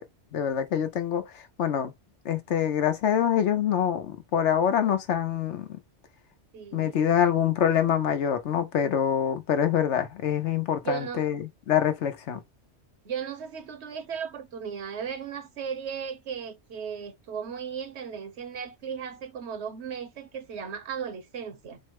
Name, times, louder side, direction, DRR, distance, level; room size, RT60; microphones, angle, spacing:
voice 1, 0.3-1.2 1.6-1.9 2.2-5.8 6.7-12.4, left 9 dB, 75° left, 1.1 m, -25 dB
voice 2, 6.5-7.1 10.8-11.3 13.0-21.8, right 7 dB, 70° right, 1.1 m, -36 dB
4.4 x 2.1 x 4.7 m
omnidirectional pair, 1.2 m